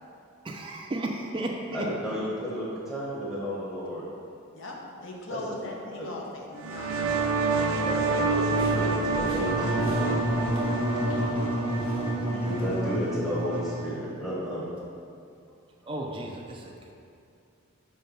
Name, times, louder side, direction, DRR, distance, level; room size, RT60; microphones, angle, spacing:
voice 1, 0.4-1.9 15.9-16.9, right 1 dB, 25° right, 0 dB, 0.4 m, -34 dB
voice 2, 1.7-4.0 5.3-5.4 6.0-6.1 7.8-10.0 12.2-14.7, equal, 15° left, -8 dB, 1.1 m, -33 dB
voice 3, 4.5-7.3, left 2 dB, 65° left, -1 dB, 0.8 m, -39 dB
sound 1, 6.6-13.9, right 3 dB, 90° right, 0.6 m, -28 dB
sound 2, 8.3-11.4 11.7-12.8, equal, 80° left, 1.1 m, -41 dB
Wind instrument woodwind instrument, 9.5-14.0, equal, 10° right, 0.8 m, -30 dB
5.4 x 3.3 x 5.3 m, 2.5 s
head